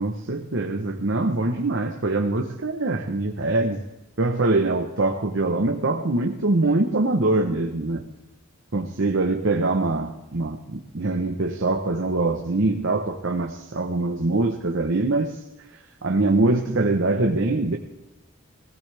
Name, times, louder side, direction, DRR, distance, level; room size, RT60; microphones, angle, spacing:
voice 1, 0.0-3.8 4.2-8.1 8.7-15.4 15.7-17.8, right 2 dB, 60° right, 3 dB, 1.0 m, -23 dB
19.0 x 16.5 x 3.4 m, 0.98 s
head